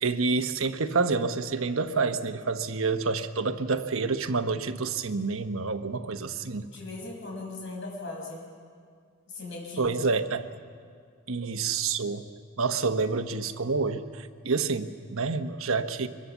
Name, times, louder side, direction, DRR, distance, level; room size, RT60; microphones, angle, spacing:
voice 1, 0.0-6.7 9.8-10.5 11.3-12.3 12.6-16.1, right 4 dB, 70° right, 8 dB, 1.1 m, -28 dB
voice 2, 6.7-8.5 9.3-9.9, left 2 dB, 55° left, -1 dB, 6.5 m, -38 dB
24.0 x 22.0 x 7.2 m, 2.1 s
head